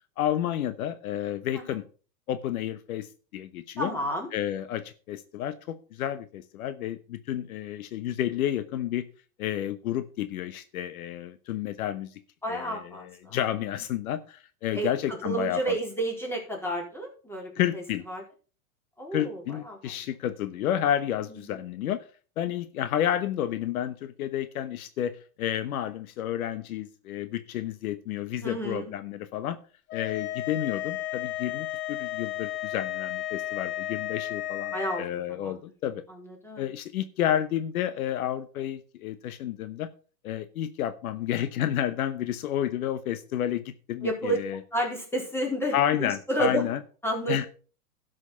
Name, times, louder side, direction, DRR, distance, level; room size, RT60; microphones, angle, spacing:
voice 1, 0.2-1.8 2.3-3.1 3.3-3.9 4.3-9.0 9.4-12.1 12.5-15.8 17.6-18.0 19.1-22.0 22.4-25.1 25.4-29.6 29.9-36.0 36.6-39.9 40.2-43.6 43.9-44.6 45.7-46.8 47.3-47.5, left 11 dB, 70° left, 12 dB, 1.1 m, -30 dB
voice 2, 3.8-4.3 12.4-13.4 14.7-18.2 19.0-19.8 21.5-21.6 28.4-28.9 34.7-35.5 36.1-36.7 44.0-44.4 44.7-46.6 47.0-47.4, right 1 dB, 5° left, -1 dB, 4.1 m, -31 dB
sound 1, 29.9-35.1, left 14 dB, 25° left, 0.8 m, -33 dB
12.0 x 6.4 x 5.7 m, 0.38 s
hypercardioid pair, 125°, 44 cm